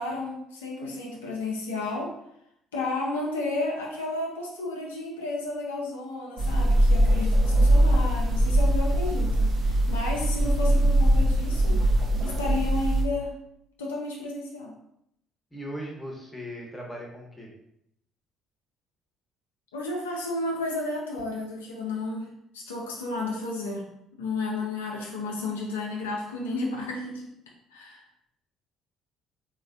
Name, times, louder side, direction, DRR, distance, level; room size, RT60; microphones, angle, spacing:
voice 1, 0.0-2.2 2.7-11.8 12.2-13.3 13.8-14.7 19.7-22.3 22.5-23.9 24.2-27.3 27.7-28.0, left 2 dB, 85° left, -2 dB, 0.4 m, -32 dB
sound 1, 6.4-13.0, right 1 dB, 50° right, 0.4 m, -22 dB
voice 2, 15.5-17.5, equal, 10° left, -1 dB, 0.9 m, -38 dB
3.0 x 2.1 x 2.5 m, 0.77 s
hypercardioid pair, 50°, 0 cm